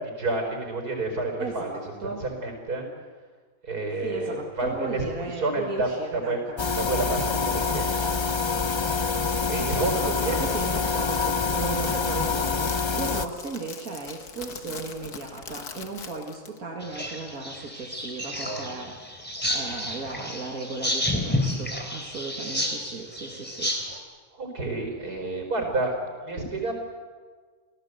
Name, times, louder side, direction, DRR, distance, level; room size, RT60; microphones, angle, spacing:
voice 1, 0.0-2.9 3.6-5.1 5.3-6.4 6.8-7.9 9.5-10.6 18.4-18.8 19.6-19.7 24.3-26.7, right 2 dB, 90° right, 4 dB, 5.3 m, -30 dB
voice 2, 1.4-2.3 4.0-6.8 7.5-7.6 9.7-19.2 19.5-24.0, right 3 dB, 65° right, 0 dB, 2.5 m, -36 dB
sound 1, 6.6-13.3, left 5 dB, 30° left, 0.6 m, -26 dB
Crackle, 9.4-16.6, left 6 dB, 90° left, 2.1 m, -42 dB
sound 2, 16.8-24.0, left 1 dB, 5° left, 3.1 m, -30 dB
29.5 x 17.5 x 8.1 m, 1.5 s
omnidirectional pair, 1.6 m